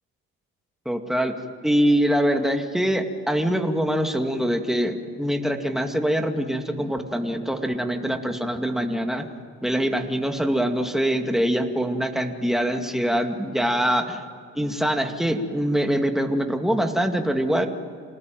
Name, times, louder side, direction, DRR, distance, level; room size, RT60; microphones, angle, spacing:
voice 1, 0.9-1.4 1.6-9.3 9.6-14.2 14.5-17.7, equal, ahead, 4 dB, 2.3 m, -24 dB
28.0 x 19.0 x 9.2 m, 2.4 s
cardioid pair, 90°, 30 cm